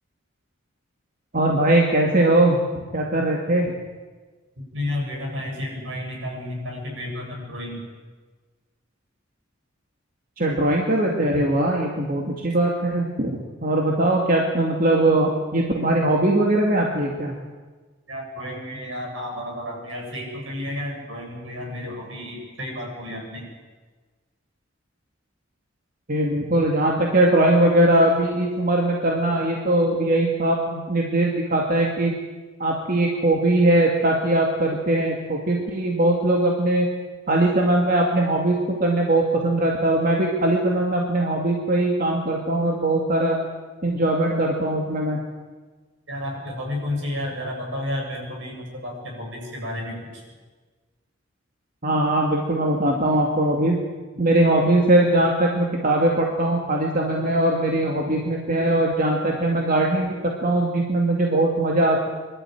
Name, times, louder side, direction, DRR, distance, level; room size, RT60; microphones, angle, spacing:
voice 1, 1.3-3.7 10.4-17.3 26.1-32.1 32.6-36.9 37.3-43.4 43.8-45.2 51.8-53.7 54.2-62.1, right 1 dB, 45° right, -1 dB, 2.5 m, -21 dB
voice 2, 4.6-7.8 18.1-23.5 46.1-50.2, left 1 dB, 75° right, 0 dB, 7.7 m, -31 dB
25.5 x 12.5 x 9.4 m, 1.4 s
head